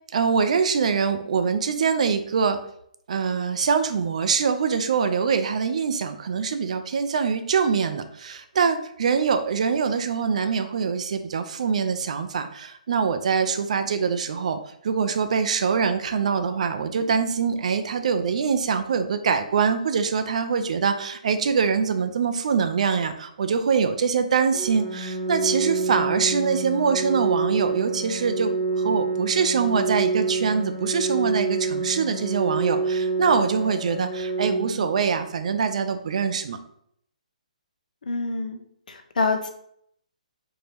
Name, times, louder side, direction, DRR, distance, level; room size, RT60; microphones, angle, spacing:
voice 1, 0.1-2.6 3.1-36.6, right 6 dB, 55° right, 9 dB, 0.4 m, -24 dB
Organ, 24.5-35.5, right 3 dB, 5° left, 0.6 m, -27 dB
voice 2, 38.0-38.6 38.9-39.5, left 3 dB, 80° left, 6 dB, 0.7 m, -26 dB
4.3 x 2.8 x 3.4 m, 0.68 s
hypercardioid pair, 160°, 4 cm